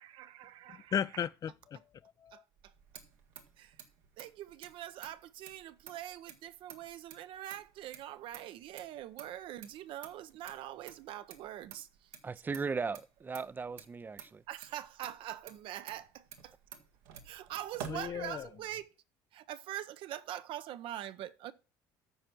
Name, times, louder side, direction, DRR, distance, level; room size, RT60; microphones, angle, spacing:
voice 1, 0.0-0.9 2.3-2.7 3.6-3.8 4.2-12.1 14.5-16.5 17.2-18.9 19.3-21.5, right 12 dB, 60° right, 0.7 m, -44 dB
voice 2, 0.9-2.4 17.8-18.5, left 8 dB, 40° left, 0.4 m, -36 dB
Motor vehicle (road), 2.5-18.8, right 8 dB, 80° right, 1.4 m, -52 dB
voice 3, 12.2-14.4, right 5 dB, 20° right, 0.5 m, -37 dB
12.5 x 4.4 x 6.0 m
supercardioid pair, 90°, 10 cm